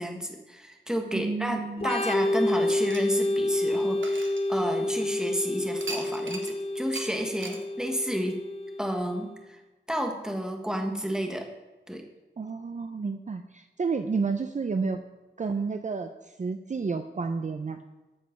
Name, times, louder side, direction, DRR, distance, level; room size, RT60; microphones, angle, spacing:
voice 1, 0.0-8.4 8.8-9.6 9.9-11.5 11.9-12.0, equal, 5° right, 3 dB, 1.4 m, -31 dB
voice 2, 1.1-1.9 12.4-15.0 15.4-17.8, right 4 dB, 40° right, 7 dB, 0.5 m, -31 dB
Organ, 1.8-9.3, left 1 dB, 30° left, 0.8 m, -29 dB
sound 1, 2.7-5.1 5.8-6.6 6.9-7.1 7.4-7.6, right 3 dB, 85° right, 1.3 m, -40 dB
14.0 x 5.2 x 5.8 m, 1.1 s
wide cardioid pair, 110°, 19 cm